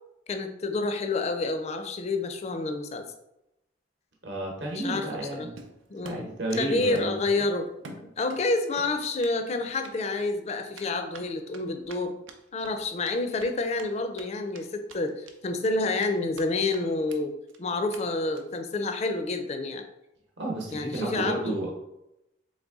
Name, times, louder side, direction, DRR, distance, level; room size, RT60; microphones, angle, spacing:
voice 1, 0.3-3.0 4.7-5.1 5.4-5.5 5.9-6.3 6.6-12.1 12.5-17.3 17.6-19.8 20.7-21.6, left 3 dB, 35° left, 6 dB, 0.4 m, -29 dB
voice 2, 4.2-5.6 6.0-7.2 20.4-21.7, right 2 dB, 65° right, -1 dB, 0.9 m, -32 dB
Run, 5.6-6.7 6.9-8.4 8.8-9.4 9.7-9.9 10.7-14.2 14.5-14.6 14.9-15.4 15.6-16.5 16.7-16.8 17.1-17.2 17.5-17.6 17.9-18.0 18.3-18.6, right 3 dB, 85° right, 0.6 m, -46 dB
3.9 x 3.2 x 3.6 m, 0.87 s
head